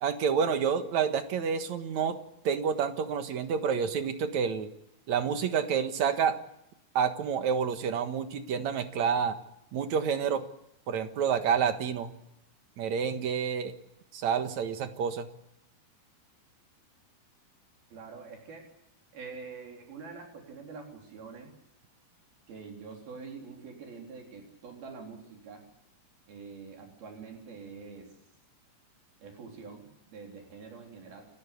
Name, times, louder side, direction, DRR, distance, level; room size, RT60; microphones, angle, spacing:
voice 1, 0.0-2.2 2.4-4.7 5.1-6.4 7.0-9.4 9.7-10.5 10.9-12.1 12.8-13.7 14.1-15.3, right 7 dB, 60° right, 9 dB, 2.5 m, -28 dB
voice 2, 17.9-18.7 19.1-21.5 22.5-25.6 26.3-28.1 29.2-31.3, right 5 dB, 80° right, 3 dB, 5.7 m, -45 dB
29.5 x 14.5 x 8.4 m, 0.82 s
omnidirectional pair, 4.3 m